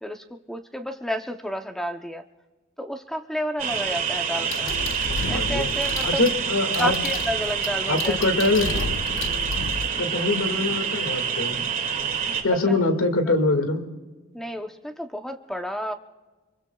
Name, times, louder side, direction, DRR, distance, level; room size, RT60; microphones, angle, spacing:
voice 1, 0.0-2.2 2.8-4.7 5.3-6.2 6.8-8.5 12.7-12.8 14.3-15.9, equal, ahead, 6 dB, 0.7 m, -31 dB
sound 1, 3.6-12.4, right 7 dB, 40° right, 2.2 m, -27 dB
sound 2, 4.5-9.9, left 4 dB, 65° left, 0.7 m, -32 dB
voice 2, 5.2-5.7 6.0-6.9 7.9-8.7 10.0-11.6 12.4-13.9, left 2 dB, 85° left, 7 dB, 2.0 m, -23 dB
25.5 x 23.5 x 2.3 m, 1.3 s
head